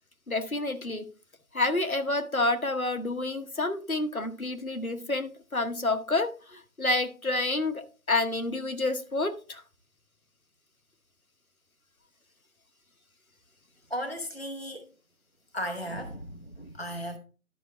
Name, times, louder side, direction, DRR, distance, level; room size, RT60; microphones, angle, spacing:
voice 1, 0.3-1.0 1.5-9.6, left 2 dB, 70° left, 1.1 m, -29 dB
voice 2, 13.9-14.9 15.5-17.2, equal, 45° left, 0.7 m, -35 dB
11.5 x 5.4 x 3.3 m
figure-of-eight pair, 180°, 44 cm